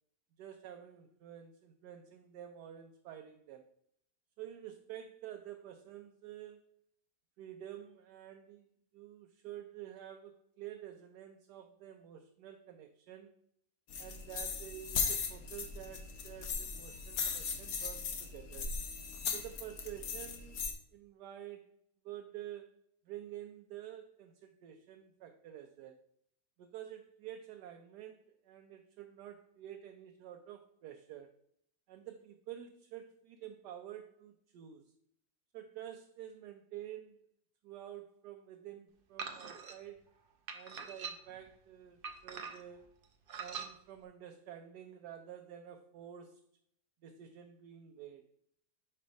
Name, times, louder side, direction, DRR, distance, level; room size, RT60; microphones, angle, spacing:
voice 1, 0.4-3.7 4.4-6.7 7.4-13.3 14.0-18.7 19.3-20.7 20.9-21.7 22.0-22.7 23.1-26.0 26.6-31.3 31.9-34.8 35.5-37.1 37.6-40.0 40.5-42.9 43.4-46.4 47.0-48.2, right 11 dB, 85° right, 5 dB, 1.2 m, -49 dB
sound 1, 13.9-20.7, left 5 dB, 65° left, 1.2 m, -38 dB
sound 2, 39.2-39.8 40.5-41.4 42.0-42.8 43.3-43.7, right 6 dB, 55° right, 0.6 m, -43 dB
5.5 x 4.3 x 5.1 m, 0.70 s
omnidirectional pair, 1.7 m